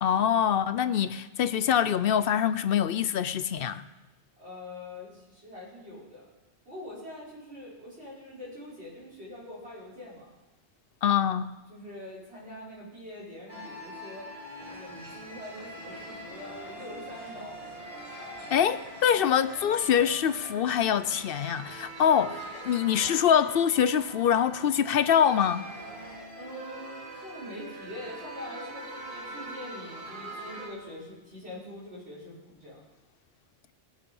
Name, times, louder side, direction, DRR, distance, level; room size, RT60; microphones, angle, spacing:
voice 1, 0.0-3.8 11.0-11.5 18.5-25.7, left 8 dB, 65° left, 0.7 m, -24 dB
voice 2, 4.4-6.3 6.7-10.3 11.7-14.3 14.6-17.8 26.3-32.8, left 1 dB, 70° right, 6.0 m, -44 dB
sound 1, 13.5-30.7, right 1 dB, 45° right, 4.0 m, -43 dB
sound 2, 14.6-26.3, right 1 dB, 30° right, 2.1 m, -51 dB
20.5 x 7.6 x 5.4 m
omnidirectional pair, 1.1 m